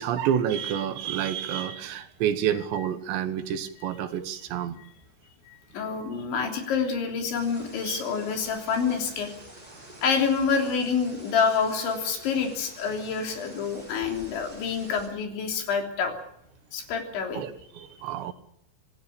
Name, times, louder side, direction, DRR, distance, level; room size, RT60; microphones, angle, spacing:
voice 1, 0.0-4.8 7.8-8.0 17.3-18.3, right 9 dB, 75° right, 10 dB, 3.3 m, -29 dB
voice 2, 5.5-9.3 10.0-16.1 16.7-17.4, left 6 dB, 70° left, 3 dB, 5.6 m, -27 dB
sound 1, 7.3-15.1, right 1 dB, 10° right, 6.9 m, -48 dB
26.5 x 17.5 x 6.9 m, 0.73 s
omnidirectional pair, 5.5 m